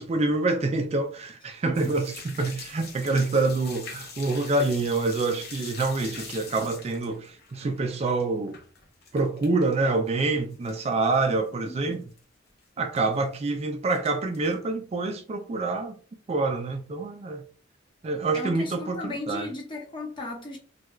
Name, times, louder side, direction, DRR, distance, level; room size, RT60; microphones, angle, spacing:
voice 1, 0.0-8.6 9.1-12.0 12.8-16.0 16.3-17.4 18.0-19.5, right 3 dB, 35° right, 0.3 m, -26 dB
sound 1, 1.7-9.8 10.1-10.8 11.1-11.2 11.7-11.8 11.9-12.2 13.0-13.5 13.9-14.5, left 4 dB, 55° left, 0.8 m, -43 dB
voice 2, 11.6-12.0 18.3-20.6, left 2 dB, 25° left, 0.9 m, -36 dB
3.3 x 2.3 x 3.0 m
head